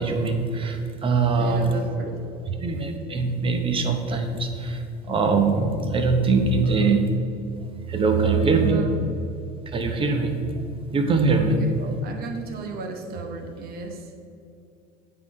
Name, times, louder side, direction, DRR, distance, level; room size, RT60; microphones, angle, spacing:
voice 1, 0.0-1.8 2.6-7.0 7.9-8.8 9.7-10.4 10.9-11.6, right 4 dB, 25° right, 5 dB, 0.8 m, -22 dB
voice 2, 1.4-2.5 6.6-7.0 8.1-9.3 11.6-14.1, right 4 dB, 50° right, 4 dB, 1.0 m, -35 dB
8.3 x 3.8 x 5.3 m, 2.5 s
supercardioid pair, 125°, 21 cm